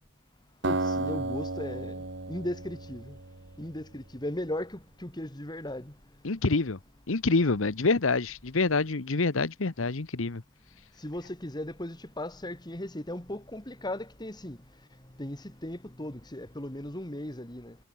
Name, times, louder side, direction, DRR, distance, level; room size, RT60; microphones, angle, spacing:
voice 1, 0.6-3.2 3.6-5.9 11.0-14.6 15.2-17.8, left 1 dB, 20° left, 2.3 m, -37 dB
Acoustic guitar, 0.6-3.8, right 2 dB, 60° right, 2.1 m, -33 dB
voice 2, 6.2-6.8 7.1-10.4, left 3 dB, 80° left, 1.0 m, -26 dB
head